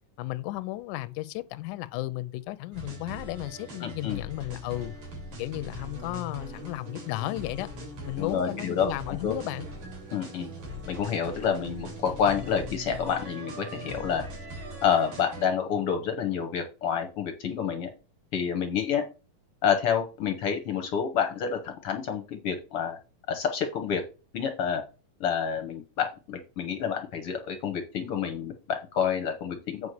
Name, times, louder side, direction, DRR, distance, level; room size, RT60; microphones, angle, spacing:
voice 1, 0.2-4.9 5.4-7.7 8.1-9.7, left 17 dB, 80° left, 2.0 m, -34 dB
sound 1, 2.7-15.5, equal, 65° right, 4.5 m, -40 dB
voice 2, 3.8-4.2 8.2-9.3 10.1-10.5 10.9-14.2 14.8-17.9 18.3-19.0 19.6-23.0 23.3-24.0 24.3-24.8 25.2-29.9, left 7 dB, 60° left, 1.5 m, -28 dB
8.4 x 4.6 x 6.5 m
omnidirectional pair, 3.7 m